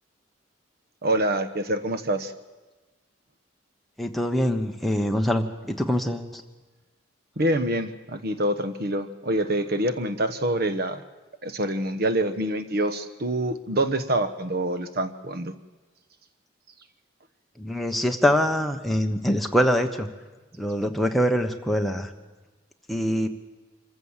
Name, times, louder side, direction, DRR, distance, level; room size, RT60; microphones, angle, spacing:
voice 1, 1.0-2.3 7.4-11.0 11.4-15.5, right 1 dB, 50° right, 11 dB, 1.1 m, -26 dB
voice 2, 4.0-6.4 17.6-20.1 20.6-22.1 22.9-23.3, equal, ahead, 3 dB, 1.1 m, -24 dB
25.5 x 15.0 x 7.3 m, 1.2 s
head